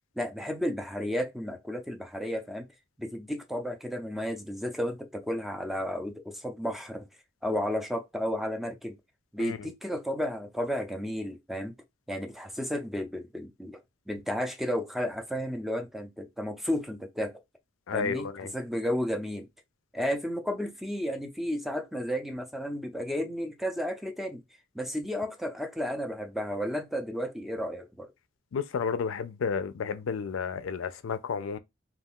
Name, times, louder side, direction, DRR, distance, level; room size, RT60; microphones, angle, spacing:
voice 1, 0.2-2.7 3.0-7.0 7.4-9.0 9.3-11.7 12.1-13.8 14.1-17.3 17.9-19.5 19.9-24.4 24.7-28.1, equal, ahead, 0.4 m, -33 dB
voice 2, 17.9-18.5 28.5-31.6, left 6 dB, 80° left, 0.4 m, -31 dB
2.3 x 2.3 x 3.5 m
head